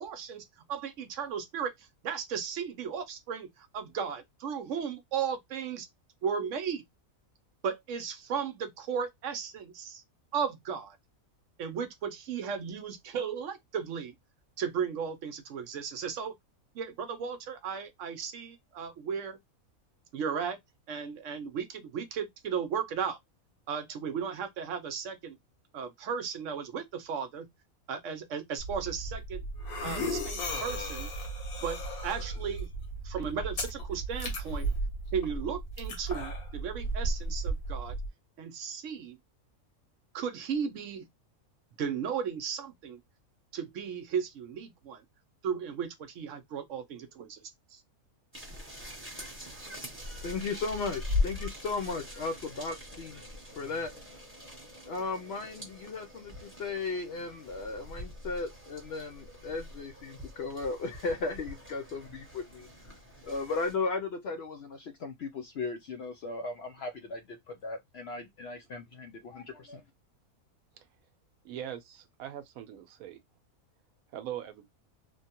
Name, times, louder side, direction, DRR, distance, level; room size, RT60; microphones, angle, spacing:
voice 1, 0.0-5.9 6.2-6.8 7.6-10.0 10.3-11.0 11.6-14.1 14.6-16.3 16.7-19.4 20.1-20.6 20.9-23.2 23.7-25.4 25.7-27.5 27.9-29.4 29.8-31.1 31.6-32.7 33.0-34.7 35.1-38.0 38.4-39.2 40.1-41.1 41.8-43.0 43.5-45.0 45.4-47.4 47.7-47.8, right 7 dB, 65° right, 0.9 m, -35 dB
sound 1, 28.6-38.1, right 1 dB, 85° left, 1.5 m, -35 dB
sound 2, 48.3-63.7, left 2 dB, 10° right, 0.8 m, -40 dB
voice 2, 50.2-53.2 53.6-53.9 54.8-69.8, left 3 dB, 65° left, 0.6 m, -36 dB
voice 3, 71.4-73.2 74.1-74.7, right 10 dB, 80° right, 1.0 m, -41 dB
3.1 x 2.2 x 2.8 m
omnidirectional pair, 1.5 m